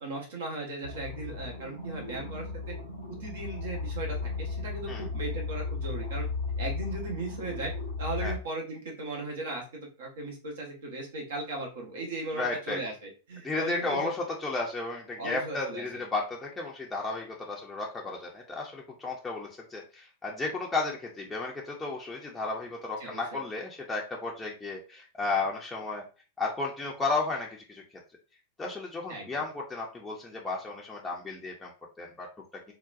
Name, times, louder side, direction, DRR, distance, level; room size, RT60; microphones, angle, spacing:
voice 1, 0.0-2.7 3.2-6.3 6.6-7.7 8.0-14.1 15.2-15.8 23.0-23.4 29.1-29.4, right 2 dB, 60° right, 0 dB, 0.8 m, -37 dB
sound 1, 0.8-8.4, left 3 dB, 90° right, 0.9 m, -35 dB
voice 2, 12.3-12.8 13.4-26.0 26.4-27.8 28.6-31.7 32.0-32.3, left 3 dB, 10° left, -2 dB, 0.6 m, -33 dB
3.8 x 2.2 x 2.4 m, 0.34 s
figure-of-eight pair, 90°, 0 cm